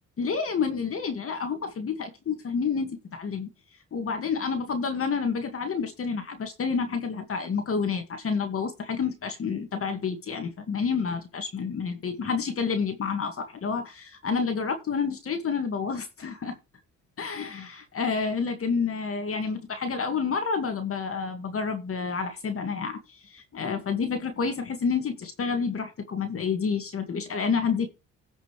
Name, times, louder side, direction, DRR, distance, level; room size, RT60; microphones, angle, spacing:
voice 1, 0.2-3.5 3.9-16.5 17.2-27.9, left 5 dB, 50° left, 2.2 m, -29 dB
17.0 x 5.9 x 3.4 m
cardioid pair, 90°, 30 cm